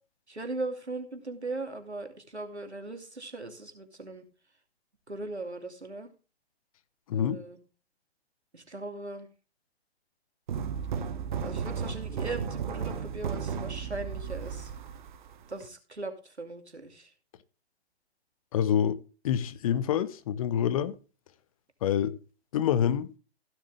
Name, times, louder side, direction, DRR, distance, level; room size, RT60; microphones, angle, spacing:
voice 1, 0.3-4.2 5.1-6.1 7.1-7.6 8.5-9.3 11.4-14.7 15.5-17.1, right 2 dB, 90° right, 2.9 m, -39 dB
sound 1, 10.5-15.7, right 6 dB, 45° right, 1.3 m, -34 dB
voice 2, 18.5-19.0 19.2-20.9 21.8-22.2 22.5-23.1, left 9 dB, 35° left, 0.9 m, -26 dB
16.0 x 7.5 x 3.3 m
figure-of-eight pair, 125°, 32 cm